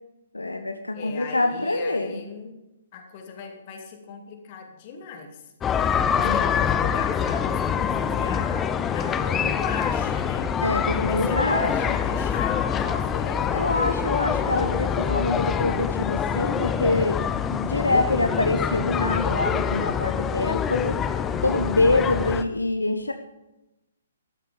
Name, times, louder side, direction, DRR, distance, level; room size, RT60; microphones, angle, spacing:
voice 1, 0.3-2.2 6.2-6.6 10.6-12.0 13.5-17.2 17.5-21.0 21.4-23.1, left 2 dB, 75° left, 7 dB, 1.0 m, -25 dB
voice 2, 0.9-2.6 2.9-5.4 6.1-10.5 11.0-13.7, left 6 dB, 35° left, 3 dB, 2.6 m, -37 dB
sound 1, 5.6-22.4, left 7 dB, 15° left, 0.7 m, -25 dB
14.0 x 12.5 x 5.2 m, 0.95 s
figure-of-eight pair, 125°, 0 cm